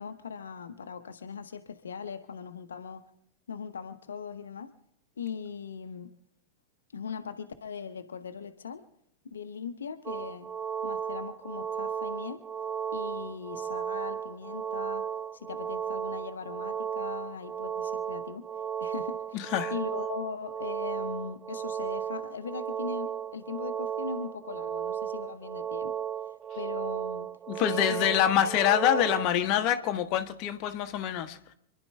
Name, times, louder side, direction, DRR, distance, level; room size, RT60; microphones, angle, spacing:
voice 1, 0.0-3.1 3.5-4.7 5.2-6.1 6.9-8.8 9.3-10.5 10.8-12.4 12.9-18.5 18.8-26.0 26.5-27.3 27.6-28.3, left 6 dB, 70° left, 8 dB, 1.0 m, -40 dB
sound 1, 10.1-29.3, right 8 dB, 20° right, 0.5 m, -35 dB
voice 2, 19.3-19.7 27.5-31.5, left 10 dB, 40° left, 6 dB, 1.2 m, -26 dB
27.5 x 11.0 x 3.4 m, 0.73 s
figure-of-eight pair, 90°, 0 cm